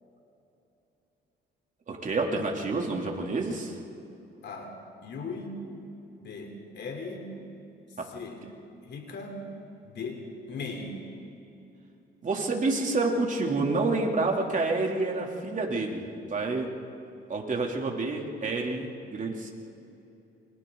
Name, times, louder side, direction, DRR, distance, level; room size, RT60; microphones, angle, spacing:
voice 1, 1.9-3.8 8.0-8.1 12.2-16.7 17.3-19.5, right 3 dB, 40° right, 0 dB, 3.2 m, -28 dB
voice 2, 4.4-4.8 5.0-5.6 6.2-7.3 8.1-8.4 8.8-9.4 9.8-11.0, left 3 dB, 60° left, 3 dB, 3.7 m, -38 dB
29.0 x 25.0 x 4.0 m, 2.8 s
cardioid pair, 90°, 20 cm